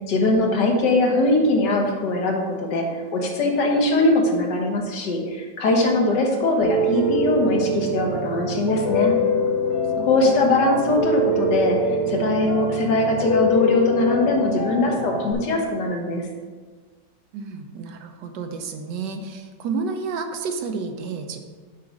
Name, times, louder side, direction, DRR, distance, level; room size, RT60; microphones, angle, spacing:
voice 1, 0.1-9.1 10.0-11.8 12.1-16.2, left 2 dB, 70° left, 1 dB, 1.7 m, -21 dB
Piano, 6.6-15.3, equal, 50° left, 1.8 m, -24 dB
voice 2, 17.3-21.4, right 4 dB, 75° right, 5 dB, 1.4 m, -30 dB
7.5 x 4.1 x 6.1 m, 1.4 s
omnidirectional pair, 1.9 m